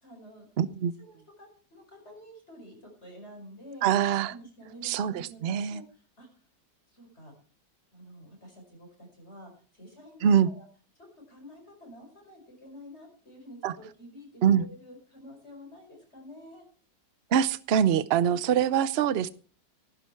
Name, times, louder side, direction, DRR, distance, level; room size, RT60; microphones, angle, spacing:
voice 1, 0.0-0.5 1.0-3.9 4.3-6.5 6.9-7.3 7.9-10.7 11.0-16.7, equal, 35° left, 2 dB, 5.4 m, -49 dB
voice 2, 0.6-0.9 3.8-4.3 4.8-5.8 10.2-10.5 13.6-13.7 14.4-14.6 17.3-19.3, right 9 dB, 70° right, 16 dB, 0.5 m, -24 dB
17.5 x 10.0 x 4.6 m, 0.42 s
omnidirectional pair, 1.9 m